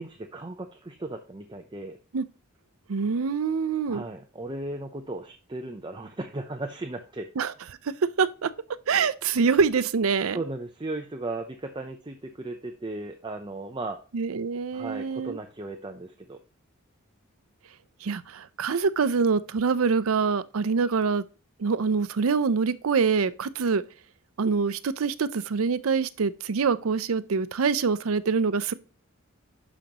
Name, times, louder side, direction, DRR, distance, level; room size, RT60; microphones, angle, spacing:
voice 1, 0.0-2.0 3.9-7.3 10.3-14.0 14.7-16.4, right 2 dB, 20° right, 0.6 m, -36 dB
voice 2, 2.9-4.1 7.4-7.5 7.8-7.9 8.2-8.5 8.9-10.4 14.1-15.4 18.0-21.2 21.6-23.8 24.4-28.7, right 5 dB, 80° right, 0.5 m, -25 dB
11.5 x 5.1 x 2.9 m
head